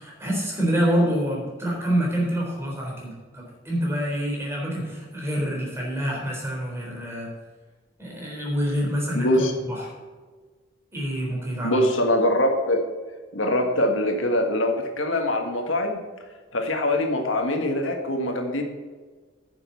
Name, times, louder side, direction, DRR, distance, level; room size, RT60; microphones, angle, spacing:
voice 1, 0.0-7.3 8.0-9.8 10.9-11.8, equal, 15° right, -3 dB, 3.8 m, -27 dB
voice 2, 9.1-9.5 11.6-12.8 13.3-16.0 16.5-18.6, left 1 dB, 80° left, 3 dB, 1.6 m, -23 dB
9.9 x 7.0 x 6.9 m, 1.4 s
head